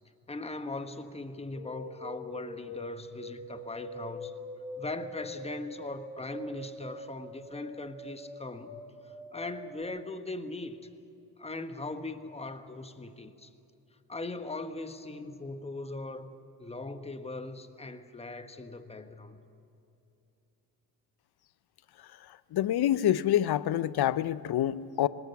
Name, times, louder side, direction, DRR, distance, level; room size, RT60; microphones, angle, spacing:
voice 1, 0.3-4.3 4.8-10.9 11.4-13.5 14.1-16.3 16.6-19.4, left 2 dB, 15° left, 9 dB, 1.3 m, -40 dB
sound 1, 1.5-9.8, equal, 5° right, 5.4 m, -44 dB
voice 2, 22.5-25.1, left 12 dB, 55° left, 18 dB, 0.7 m, -26 dB
20.0 x 18.5 x 8.2 m, 2.7 s
hypercardioid pair, 50°, 47 cm